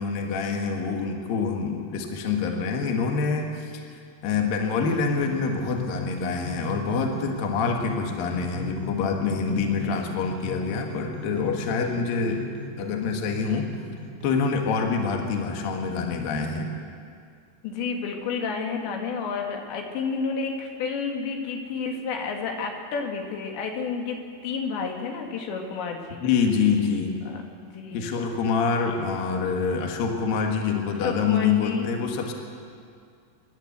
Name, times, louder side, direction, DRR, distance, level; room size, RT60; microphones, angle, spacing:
voice 1, 0.0-3.9 4.2-12.4 12.8-13.7 14.2-16.7 26.2-27.1 27.9-32.3, left 5 dB, 60° left, 2 dB, 3.0 m, -26 dB
sound 1, 5.0-16.4, equal, 20° right, 1.5 m, -37 dB
voice 2, 9.7-10.1 17.6-26.2 27.3-27.4 27.7-28.2 31.0-31.9, left 5 dB, 80° left, 2 dB, 4.0 m, -31 dB
28.0 x 11.5 x 8.0 m, 2.3 s
omnidirectional pair, 5.1 m